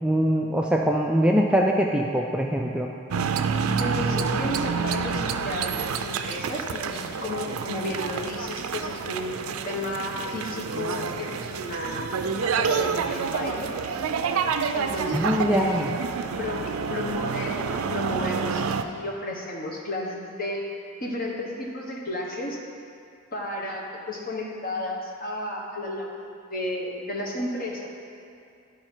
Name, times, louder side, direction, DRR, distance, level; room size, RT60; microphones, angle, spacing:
voice 1, 0.0-2.9 15.1-15.9, equal, 5° right, 0 dB, 0.3 m, -23 dB
sound 1, 3.1-18.8, right 5 dB, 90° right, 0.4 m, -28 dB
voice 2, 3.8-12.0 12.4-13.7 14.7-15.9 16.4-22.6 23.3-27.9, left 1 dB, 45° left, -2 dB, 1.2 m, -33 dB
11.0 x 4.8 x 4.5 m, 2.5 s
head